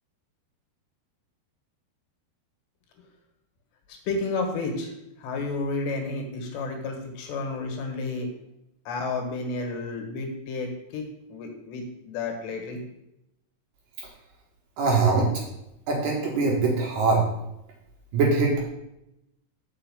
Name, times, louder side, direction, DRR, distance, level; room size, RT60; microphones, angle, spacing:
voice 1, 3.9-4.9 5.2-8.3 8.9-12.8, left 3 dB, 80° left, 3 dB, 3.5 m, -31 dB
voice 2, 14.8-15.3 15.9-17.2 18.1-18.6, right 4 dB, 65° right, -2 dB, 2.5 m, -22 dB
6.4 x 5.6 x 6.9 m, 0.86 s
omnidirectional pair, 4.9 m